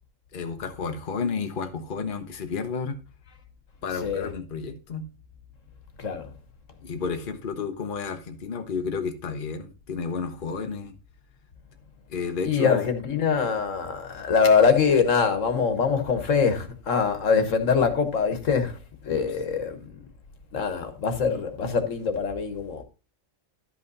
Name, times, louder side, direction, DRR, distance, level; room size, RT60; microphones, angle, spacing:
voice 1, 0.3-3.0 3.8-5.1 6.8-10.9 12.1-12.9, left 5 dB, 45° left, 1.1 m, -31 dB
voice 2, 6.0-6.3 12.4-20.0 20.5-22.8, left 5 dB, 75° left, 1.6 m, -23 dB
11.5 x 5.5 x 4.0 m
omnidirectional pair, 1.3 m